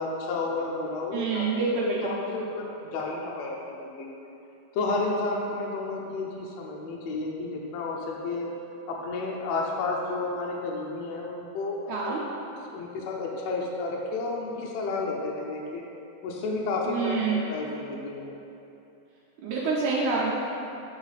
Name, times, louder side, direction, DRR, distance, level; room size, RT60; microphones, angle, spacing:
voice 1, 0.0-1.5 2.0-4.3 4.7-8.5 8.9-12.1 12.7-15.8 16.2-18.3, left 3 dB, 75° left, -2 dB, 1.6 m, -31 dB
voice 2, 1.1-2.2 11.9-12.2 16.9-17.4 19.4-20.3, right 4 dB, 80° right, -6 dB, 2.2 m, -27 dB
7.0 x 4.1 x 4.0 m, 2.8 s
omnidirectional pair, 3.5 m